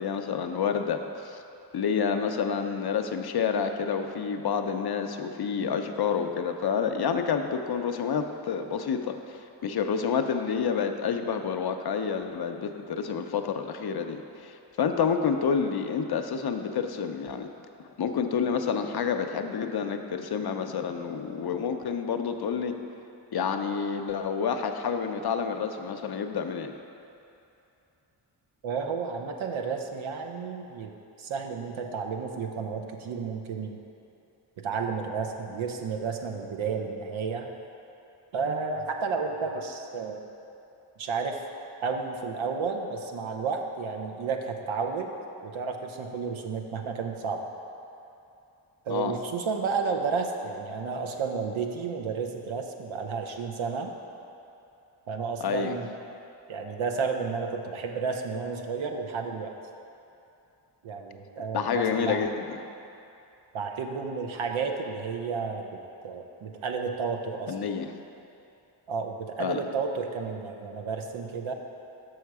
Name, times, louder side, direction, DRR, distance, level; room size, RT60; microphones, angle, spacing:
voice 1, 0.0-1.4 1.7-17.5 18.0-22.8 23.3-26.7 48.9-49.1 55.4-55.7 61.5-62.6 67.5-67.9 69.4-69.6, left 6 dB, 50° left, 6 dB, 0.6 m, -29 dB
voice 2, 28.6-30.9 31.2-33.8 34.6-37.5 38.3-40.2 41.0-41.4 41.8-45.1 45.4-47.4 48.9-53.9 55.1-55.9 56.5-59.5 60.8-62.2 63.5-65.7 66.0-67.5 68.9-71.5, right 5 dB, 70° right, 3 dB, 0.8 m, -32 dB
6.4 x 6.2 x 4.7 m, 2.7 s
cardioid pair, 50°, 49 cm